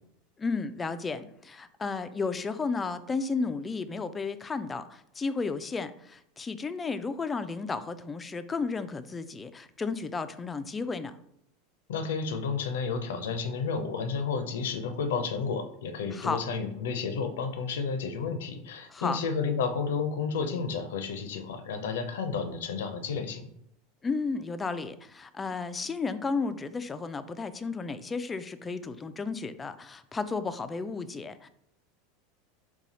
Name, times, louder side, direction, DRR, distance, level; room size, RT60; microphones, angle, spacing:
voice 1, 0.4-11.2 16.1-16.4 18.9-19.2 24.0-31.5, left 4 dB, 20° left, 12 dB, 0.3 m, -33 dB
voice 2, 11.9-23.5, left 5 dB, 75° left, 8 dB, 0.5 m, -31 dB
4.1 x 2.3 x 4.0 m, 0.76 s
hypercardioid pair, 90°, 0 cm